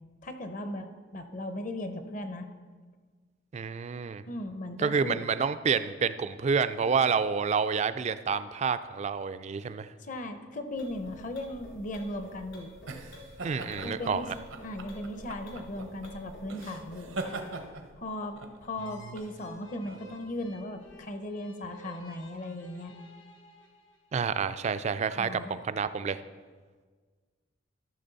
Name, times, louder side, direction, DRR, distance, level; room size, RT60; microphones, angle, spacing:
voice 1, 0.2-2.5 4.3-5.2 10.0-12.7 13.8-14.3 14.6-17.2 18.0-18.4 18.6-22.9 25.1-25.6, left 1 dB, 40° left, 8 dB, 0.7 m, -37 dB
voice 2, 3.5-4.2 4.8-9.9 13.4-14.3 24.1-26.2, right 6 dB, 35° right, 13 dB, 0.3 m, -29 dB
sound 1, 10.7-17.6, left 1 dB, 65° left, 2.6 m, -49 dB
sound 2, 11.8-21.0, right 2 dB, 85° right, 0.9 m, -43 dB
sound 3, 18.7-24.3, equal, 80° left, 1.3 m, -54 dB
13.5 x 6.1 x 4.0 m, 1.5 s
head